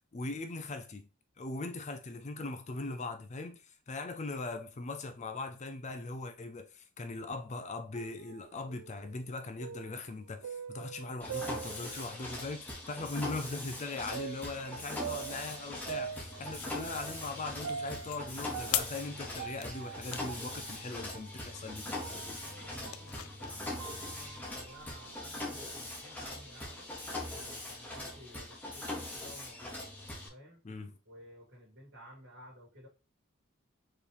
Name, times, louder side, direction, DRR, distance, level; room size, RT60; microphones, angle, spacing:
voice 1, 0.1-1.1 1.4-22.1 30.6-30.9, left 3 dB, 30° left, 0.4 m, -40 dB
sound 1, 7.9-12.5 13.0-13.1 14.1-23.1 23.5-25.4, right 7 dB, 85° right, 0.3 m, -44 dB
Mechanisms, 11.2-30.3, left 1 dB, 5° left, 1.0 m, -42 dB
sound 2, 16.1-24.9, left 12 dB, 90° left, 0.5 m, -44 dB
voice 2, 21.9-26.9 27.3-29.8 30.3-30.6 31.1-32.9, equal, 50° right, 2.2 m, -55 dB
4.6 x 3.2 x 3.3 m
head